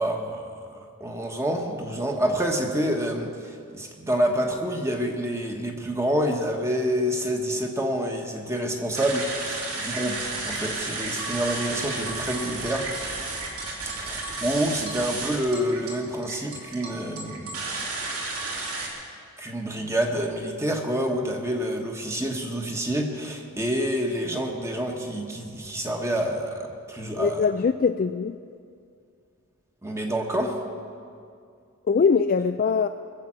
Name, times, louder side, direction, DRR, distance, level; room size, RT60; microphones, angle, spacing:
voice 1, 0.0-12.9 13.8-17.6 19.4-27.5 29.8-30.6, equal, 15° right, 2 dB, 1.2 m, -28 dB
sound 1, 8.9-18.9, right 3 dB, 85° right, 2.8 m, -32 dB
voice 2, 27.2-28.4 31.9-32.9, left 5 dB, 40° left, 9 dB, 0.3 m, -22 dB
21.0 x 7.5 x 7.5 m, 2.3 s
head